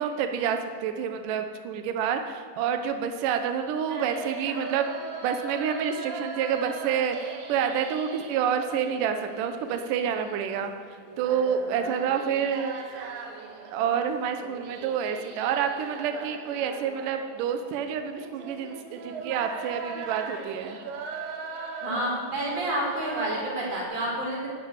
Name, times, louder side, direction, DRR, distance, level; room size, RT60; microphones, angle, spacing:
voice 1, 0.0-4.9 5.2-10.7 11.2-13.0 13.7-20.8, right 8 dB, 90° right, 6 dB, 1.8 m, -28 dB
sound 1, 3.9-23.8, right 4 dB, 65° right, 2.7 m, -39 dB
voice 2, 21.8-24.5, right 1 dB, 35° right, -3 dB, 5.6 m, -29 dB
12.5 x 10.5 x 8.7 m, 2.3 s
omnidirectional pair, 5.2 m